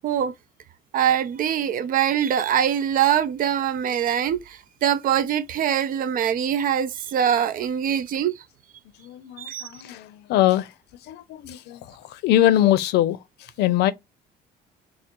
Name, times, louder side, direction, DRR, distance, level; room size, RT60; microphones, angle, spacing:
voice 1, 0.0-0.3 0.9-8.3 9.4-9.7, right 9 dB, 55° right, 0.5 m, -23 dB
voice 2, 9.0-10.7 11.1-11.8 12.1-13.2 13.6-13.9, left 13 dB, 80° left, 0.6 m, -22 dB
3.7 x 2.0 x 4.3 m
cardioid pair, 110°, 17 cm